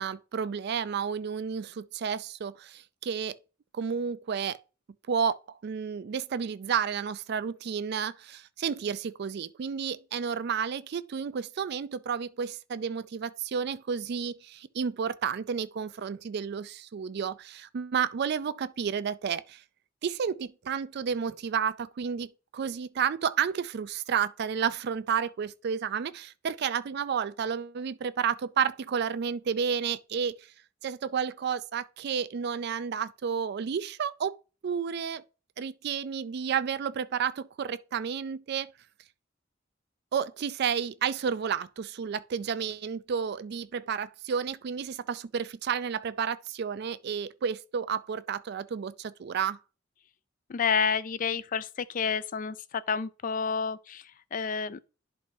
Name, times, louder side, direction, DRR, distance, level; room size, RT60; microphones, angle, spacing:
voice 1, 0.0-3.4 3.7-4.6 5.1-19.6 20.0-30.3 30.8-34.4 34.6-35.2 35.6-38.7 40.1-49.6, right 7 dB, 60° right, 0.4 m, -31 dB
voice 2, 50.5-54.8, left 6 dB, 45° left, 0.4 m, -30 dB
11.0 x 4.6 x 2.7 m
head